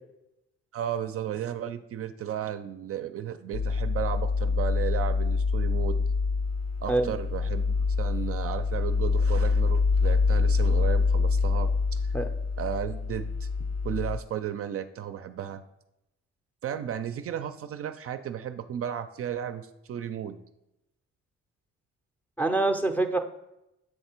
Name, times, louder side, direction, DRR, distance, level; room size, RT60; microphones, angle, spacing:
voice 1, 0.7-6.0 6.8-12.1 12.6-13.5 13.8-15.6 16.6-20.4, right 9 dB, 50° right, 9 dB, 0.4 m, -34 dB
sound 1, 3.5-14.2, left 4 dB, 60° left, 0.5 m, -26 dB
voice 2, 22.4-23.2, right 2 dB, 5° left, 5 dB, 0.5 m, -25 dB
7.7 x 3.2 x 4.4 m, 0.88 s
cardioid pair, 90°, 30 cm